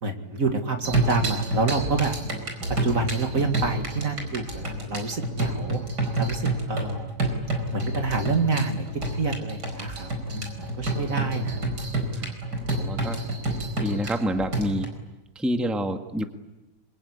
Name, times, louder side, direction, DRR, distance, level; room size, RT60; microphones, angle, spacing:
voice 1, 0.0-2.2 2.8-5.8 6.2-7.1 7.7-8.9 9.1-11.6, right 4 dB, 55° right, 5 dB, 2.5 m, -28 dB
sound 1, 0.8-14.9, right 2 dB, 80° right, 5.4 m, -29 dB
voice 2, 12.8-13.2 13.8-14.9 15.3-16.2, equal, ahead, 5 dB, 1.5 m, -28 dB
25.5 x 23.0 x 9.9 m, 1.0 s
omnidirectional pair, 1.8 m